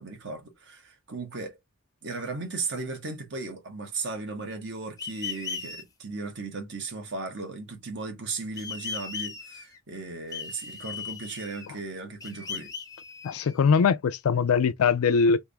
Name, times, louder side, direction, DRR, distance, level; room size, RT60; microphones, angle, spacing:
voice 1, 0.0-1.6 2.0-12.7, right 3 dB, 55° right, 1.3 m, -36 dB
sound 1, 5.0-5.8 8.6-9.8 10.3-11.8 12.2-13.8, left 6 dB, 15° left, 0.6 m, -38 dB
voice 2, 13.2-15.4, left 5 dB, 85° left, 0.4 m, -22 dB
3.5 x 2.6 x 3.4 m
head